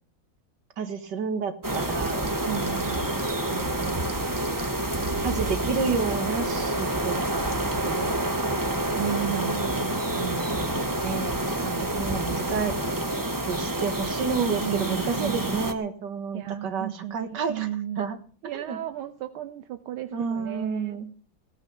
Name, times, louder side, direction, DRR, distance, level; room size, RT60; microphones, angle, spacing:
voice 1, 0.8-2.3 3.4-4.0 5.2-7.2 7.8-8.1 10.1-12.8 13.5-17.7 18.0-18.2 18.5-18.8 20.1-21.1, right 5 dB, 55° right, 9 dB, 2.1 m, -30 dB
sound 1, 1.6-15.7, right 1 dB, 20° right, 0.5 m, -28 dB
voice 2, 2.5-3.1 8.9-10.0 14.6-15.7 16.3-18.0 18.4-21.0, right 11 dB, 80° right, 9 dB, 1.7 m, -34 dB
17.0 x 9.2 x 7.0 m, 0.42 s
omnidirectional pair, 2.3 m